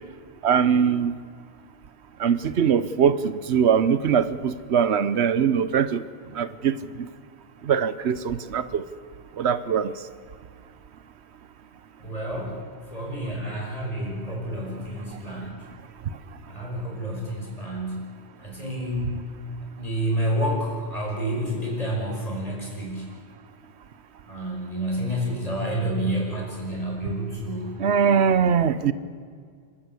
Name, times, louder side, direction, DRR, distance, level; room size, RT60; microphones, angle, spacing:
voice 1, 0.4-1.1 2.2-6.0 6.4-6.8 7.7-8.8 9.4-9.9 27.8-28.9, right 7 dB, 90° right, 1.1 m, -21 dB
voice 2, 12.0-12.6 12.9-15.6 16.5-18.1 18.4-19.2 19.8-23.1 24.3-27.8, equal, 35° left, 6.0 m, -29 dB
29.0 x 13.0 x 8.3 m
omnidirectional pair, 1.1 m